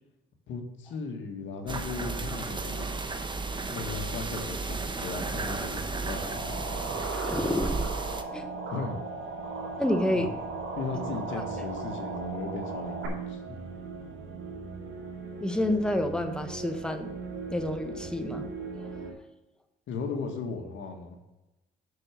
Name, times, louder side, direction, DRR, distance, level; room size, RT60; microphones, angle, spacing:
voice 1, 0.5-2.9 3.7-6.9 8.7-9.0 10.1-10.3 10.8-13.6 19.9-21.2, left 4 dB, 75° left, 4 dB, 1.7 m, -37 dB
sound 1, 1.7-8.2, right 3 dB, 25° right, 1.0 m, -33 dB
sound 2, 6.1-13.1, right 3 dB, 90° right, 3.1 m, -37 dB
voice 2, 7.2-7.8 8.3-8.5 9.8-10.3 10.9-11.0 11.3-11.4 15.4-17.1 17.5-18.4 18.8-18.9, left 1 dB, 5° left, 5 dB, 1.2 m, -29 dB
sound 3, 8.1-19.1, right 5 dB, 75° right, 2.5 m, -40 dB
6.5 x 6.4 x 7.5 m, 1.0 s
cardioid pair, 90°, 20 cm